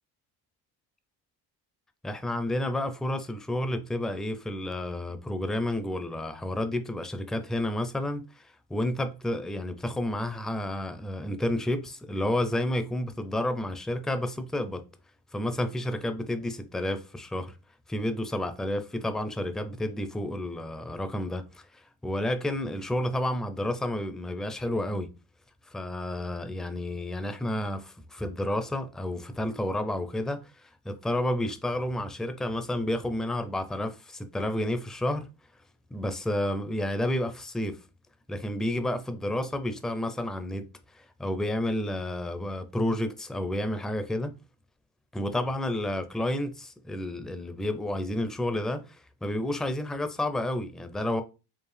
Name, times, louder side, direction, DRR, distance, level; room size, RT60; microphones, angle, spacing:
voice 1, 2.0-14.8 15.3-17.5 17.9-25.1 25.7-35.3 35.9-37.8 38.3-40.7 40.9-44.3 45.1-51.2, left 1 dB, ahead, 0.4 m, -30 dB
4.7 x 2.4 x 3.2 m
supercardioid pair, 85°, 46 cm